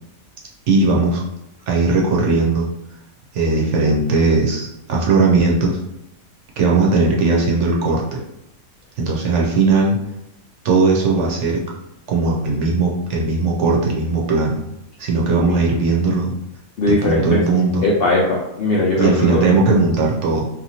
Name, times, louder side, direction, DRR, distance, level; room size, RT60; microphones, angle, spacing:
voice 1, 0.7-1.2 1.7-2.7 3.3-5.8 6.6-8.2 9.0-10.0 10.6-11.6 12.1-14.6 15.0-16.3 16.9-17.8 19.0-20.5, right 3 dB, 65° right, -2 dB, 0.8 m, -18 dB
voice 2, 15.3-15.7 16.8-17.5 17.8-19.4, left 2 dB, 70° left, -4 dB, 0.5 m, -19 dB
2.9 x 2.4 x 2.7 m, 0.85 s
omnidirectional pair, 1.5 m